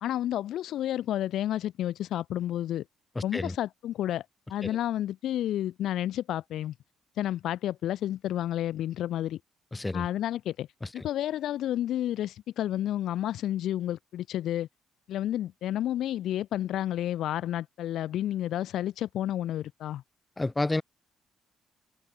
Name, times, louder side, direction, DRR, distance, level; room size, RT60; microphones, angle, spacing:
voice 1, 0.0-2.8 3.2-4.2 4.5-6.7 7.2-9.4 9.9-10.7 10.9-14.7 15.1-20.0, left 12 dB, 80° left, 0.5 m, -30 dB
voice 2, 9.7-10.1 11.0-11.1 20.4-20.8, left 2 dB, 15° left, 0.8 m, -29 dB
cardioid pair, 90°, 0 cm